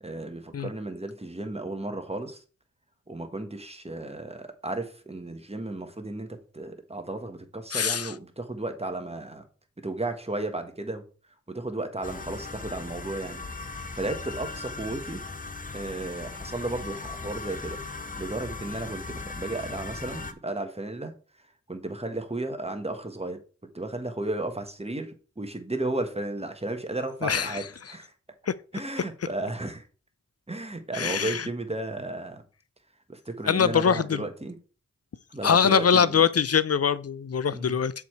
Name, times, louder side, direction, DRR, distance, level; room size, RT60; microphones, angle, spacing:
voice 1, 0.0-2.4 3.1-9.4 9.8-11.0 11.5-13.4 13.7-15.2 15.7-21.1 21.4-23.4 23.7-28.1 28.7-29.8 30.5-32.4 33.1-34.6 35.3-36.3 37.5-37.8, right 2 dB, 20° right, 1.4 m, -34 dB
voice 2, 7.7-8.1 27.2-27.6 28.5-28.6 30.9-31.5 33.5-34.2 35.4-37.9, left 7 dB, 55° left, 0.5 m, -23 dB
sound 1, 12.0-20.3, left 3 dB, 25° left, 0.8 m, -38 dB
6.8 x 4.8 x 4.5 m
wide cardioid pair, 45°, 30 cm